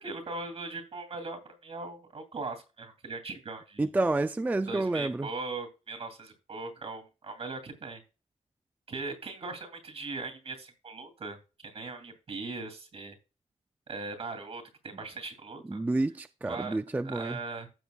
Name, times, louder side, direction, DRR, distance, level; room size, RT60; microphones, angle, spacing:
voice 1, 0.0-3.9 4.7-8.0 8.9-11.4 11.6-13.2 13.9-15.8 16.4-16.8 17.0-17.7, right 3 dB, 60° right, 2.6 m, -39 dB
voice 2, 3.8-5.3 15.7-17.4, right 2 dB, 15° right, 0.3 m, -29 dB
15.5 x 6.1 x 2.3 m
wide cardioid pair, 120°, 12 cm